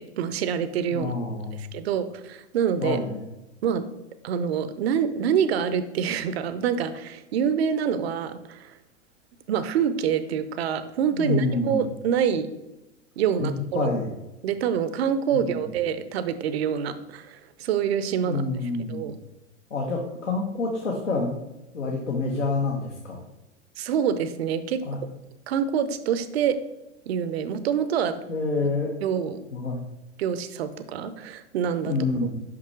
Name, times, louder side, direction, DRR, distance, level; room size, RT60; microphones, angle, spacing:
voice 1, 0.0-1.1 1.6-3.0 3.6-3.8 4.2-8.8 9.5-12.5 13.2-13.9 14.4-18.4 18.9-19.2 23.8-24.8 25.5-26.6 27.1-28.2 29.0-29.4 30.2-31.9, right 8 dB, 60° right, 13 dB, 0.6 m, -26 dB
voice 2, 0.9-1.6 2.8-3.2 11.1-11.8 13.4-13.5 13.7-14.1 15.5-15.7 18.2-19.0 19.7-21.3 21.7-23.2 24.8-25.0 28.3-28.9 29.5-29.8 31.9-32.3, left 3 dB, 75° left, -1 dB, 1.1 m, -27 dB
5.9 x 5.6 x 3.2 m, 0.97 s
figure-of-eight pair, 95°, 36 cm